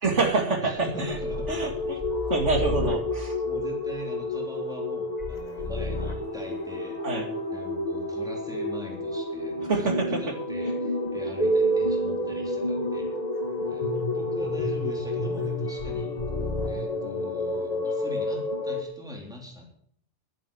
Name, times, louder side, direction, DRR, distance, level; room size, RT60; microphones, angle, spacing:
voice 1, 0.0-1.2 1.5-3.4 7.0-7.3 9.7-10.2, right 3 dB, 85° right, 3 dB, 2.6 m, -26 dB
voice 2, 0.6-1.6 3.4-7.0 7.5-9.9 10.2-13.1 13.7-16.1 16.6-19.7, left 1 dB, 5° right, -1 dB, 3.5 m, -42 dB
lost in love, 0.8-18.8, left 1 dB, 35° left, 2.1 m, -29 dB
12.0 x 11.0 x 7.0 m, 0.64 s
omnidirectional pair, 1.2 m